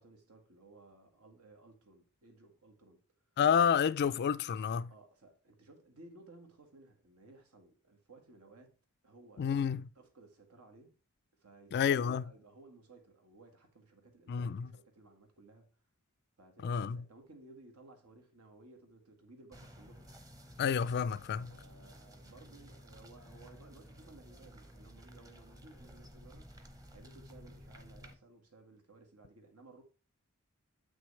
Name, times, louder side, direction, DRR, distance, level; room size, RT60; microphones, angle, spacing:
voice 1, 0.0-3.0 4.9-8.8 9.0-11.0 11.4-15.8 16.4-20.1 21.5-26.5 26.9-29.8, right 2 dB, 85° right, 1.7 m, -58 dB
voice 2, 3.4-4.9 9.4-9.8 11.7-12.2 14.3-14.7 16.6-17.0 20.6-21.5, left 7 dB, 50° left, 0.3 m, -29 dB
sound 1, 19.5-28.1, equal, 15° right, 0.8 m, -54 dB
7.8 x 6.1 x 3.2 m
head